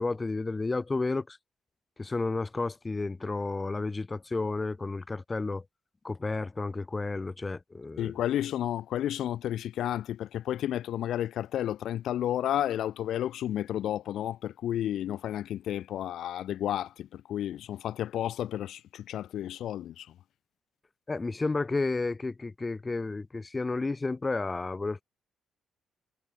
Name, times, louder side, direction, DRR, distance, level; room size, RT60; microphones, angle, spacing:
voice 1, 0.0-1.4 2.0-5.6 6.0-8.1 21.1-25.0, left 3 dB, 25° left, 6.3 m, -31 dB
voice 2, 8.0-20.1, left 11 dB, 75° left, 6.0 m, -32 dB
cardioid pair, 90°, 0 cm